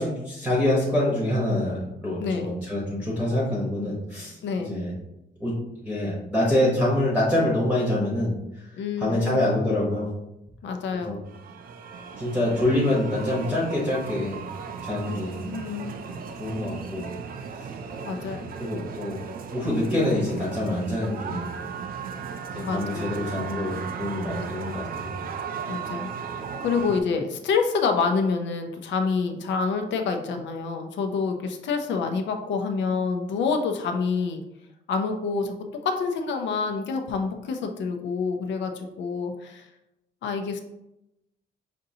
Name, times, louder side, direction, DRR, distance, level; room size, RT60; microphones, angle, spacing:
voice 1, 0.0-4.9 5.4-5.5 5.8-8.7 9.0-10.1 11.1-11.2 12.2-14.4 14.8-15.4 16.4-17.1 18.2-19.2 19.5-21.5 22.5-25.1, left 1 dB, 10° right, -5 dB, 0.9 m, -26 dB
voice 2, 4.4-4.8 8.8-9.6 10.6-11.2 15.1-15.2 15.5-16.0 18.0-18.5 22.6-23.5 25.7-26.1 26.6-34.4 34.9-35.5 35.8-39.7 40.2-40.6, left 5 dB, 80° left, 5 dB, 0.6 m, -27 dB
sound 1, 11.3-27.0, right 6 dB, 50° right, 0.4 m, -36 dB
5.1 x 2.7 x 2.7 m, 0.88 s
wide cardioid pair, 150°, 18 cm